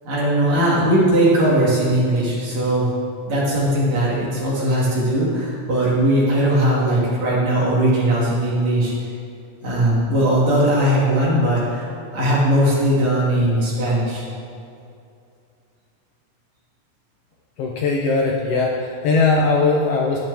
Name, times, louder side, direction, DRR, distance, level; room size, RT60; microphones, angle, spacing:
voice 1, 0.0-2.9 3.3-8.9 9.6-14.2, right 1 dB, 65° right, -6 dB, 3.7 m, -19 dB
voice 2, 17.6-20.2, left 3 dB, 70° left, -1 dB, 1.6 m, -19 dB
12.0 x 10.5 x 3.5 m, 2.5 s
omnidirectional pair, 3.5 m